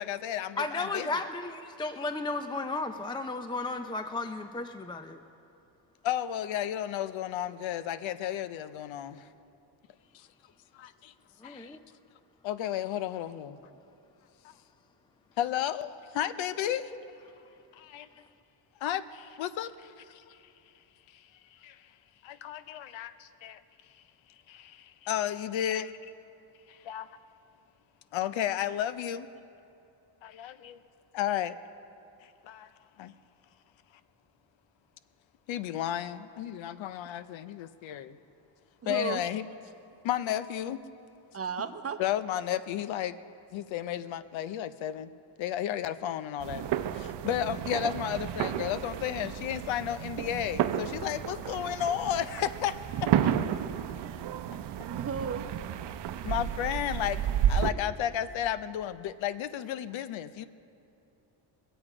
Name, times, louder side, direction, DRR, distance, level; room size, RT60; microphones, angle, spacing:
voice 1, 0.0-1.2 6.0-9.3 10.1-10.3 10.7-11.1 11.4-11.8 12.4-13.6 14.4-14.5 15.4-16.9 17.7-18.1 18.8-20.4 21.1-21.9 22.2-23.6 23.9-24.0 24.5-25.9 26.7-27.1 28.1-29.3 30.2-30.8 31.1-31.6 32.2-32.7 33.0-33.1 35.5-38.2 38.9-39.5 40.0-40.8 42.0-43.2 43.5-45.1 45.4-46.7 46.9-53.3 56.2-57.2 57.5-60.5, left 11 dB, 75° left, 14 dB, 0.7 m, -33 dB
voice 2, 0.6-5.2 11.4-11.8, left 3 dB, 10° left, 8 dB, 0.4 m, -34 dB
voice 3, 38.8-39.2 41.3-42.0 54.9-55.4, right 6 dB, 30° right, 8 dB, 0.8 m, -34 dB
sound 1, 46.4-57.7, right 10 dB, 60° right, 0.7 m, -32 dB
23.5 x 8.0 x 4.9 m, 2.7 s
cardioid pair, 95°, 47 cm